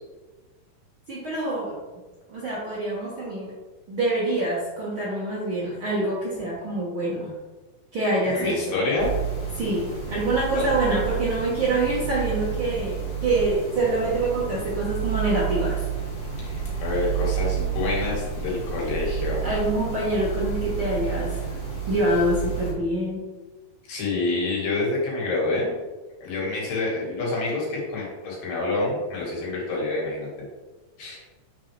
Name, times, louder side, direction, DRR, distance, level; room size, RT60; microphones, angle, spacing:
voice 1, 1.1-1.8 2.3-3.5 3.9-7.3 7.9-8.6 9.5-15.8 19.4-21.5 21.9-23.2, right 2 dB, 55° right, -7 dB, 1.6 m, -25 dB
voice 2, 8.3-9.1 10.6-10.7 16.4-19.5 23.9-25.7 26.2-30.5 31.0-31.2, left 3 dB, 80° left, -4 dB, 3.6 m, -27 dB
sound 1, 9.0-22.7, right 7 dB, 40° left, 1.4 m, -30 dB
7.8 x 5.8 x 3.3 m, 1.3 s
omnidirectional pair, 4.0 m